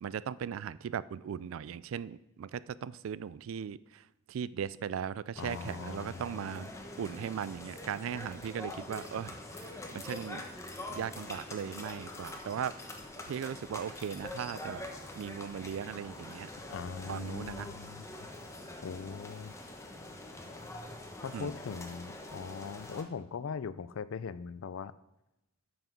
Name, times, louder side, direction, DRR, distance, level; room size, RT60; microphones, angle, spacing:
voice 1, 0.0-6.7 7.0-10.4 10.9-12.7 13.3-14.8 15.2-16.5 17.1-17.7 21.3-21.6, right 8 dB, 70° right, 19 dB, 0.3 m, -38 dB
voice 2, 5.4-6.4 16.7-18.1 18.8-19.5 21.2-24.9, left 6 dB, 70° left, 15 dB, 0.4 m, -40 dB
sound 1, 5.4-23.0, left 2 dB, 15° left, 1.1 m, -45 dB
9.1 x 6.1 x 5.2 m, 0.93 s
head